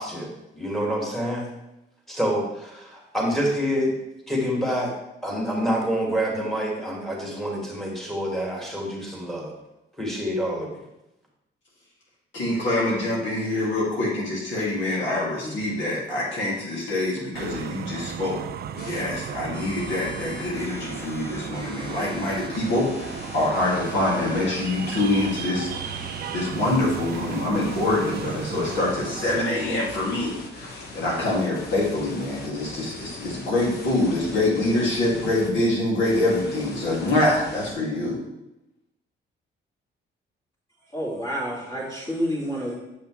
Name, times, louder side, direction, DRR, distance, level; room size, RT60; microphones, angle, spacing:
voice 1, 0.0-1.5 2.1-4.0 4.3-4.9 5.2-9.5 10.0-10.7, equal, ahead, -2 dB, 2.0 m, -27 dB
voice 2, 12.3-18.4 18.7-38.2, left 2 dB, 70° left, -5 dB, 2.3 m, -25 dB
sound 1, 17.3-29.5, right 8 dB, 55° right, 0.4 m, -36 dB
sound 2, 18.8-19.0 19.5-35.5 36.0-37.7, left 3 dB, 55° left, 1.3 m, -41 dB
voice 3, 40.9-42.7, equal, 25° left, -10 dB, 2.4 m, -29 dB
7.4 x 5.3 x 3.2 m, 0.91 s
cardioid pair, 90°, 20 cm